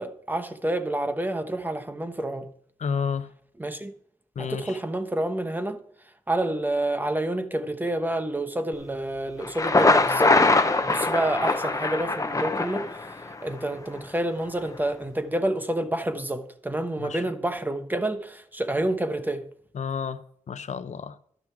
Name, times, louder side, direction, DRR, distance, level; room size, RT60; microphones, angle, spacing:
voice 1, 0.0-2.5 3.6-3.9 4.4-5.8 6.3-10.4 10.8-13.1 13.4-19.4, right 1 dB, 15° right, 1.1 m, -28 dB
voice 2, 2.8-3.3 4.4-4.8 17.0-17.2 19.7-20.2 20.5-21.2, left 6 dB, 75° left, 0.8 m, -30 dB
Thunder, 9.4-13.4, left 3 dB, 25° left, 0.9 m, -22 dB
12.0 x 6.1 x 4.7 m
wide cardioid pair, 90°, 12 cm